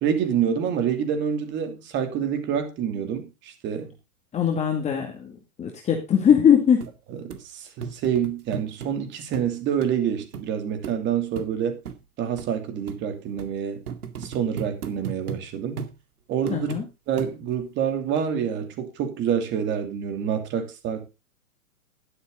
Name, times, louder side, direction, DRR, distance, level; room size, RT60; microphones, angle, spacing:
voice 1, 0.0-3.9 7.2-11.8 12.2-13.8 14.2-15.8 16.3-16.7 17.1-21.1, right 8 dB, 25° right, 2.8 m, -27 dB
voice 2, 4.3-6.9 16.5-16.8, left 8 dB, 15° left, 2.1 m, -21 dB
sound 1, 6.3-6.4 6.8-6.9 7.3-7.4 7.8-8.9 9.3-9.5 9.8-9.9 10.3-10.5 10.8-11.0 11.4-11.5 11.8-12.0 12.4-12.5 12.9-13.0 13.4-13.5 13.9-15.4 15.8-16.0 16.5-16.8 17.2-17.6 18.2-18.3, right 7 dB, 85° right, 2.3 m, -35 dB
12.0 x 11.0 x 3.8 m
hypercardioid pair, 150°, 44 cm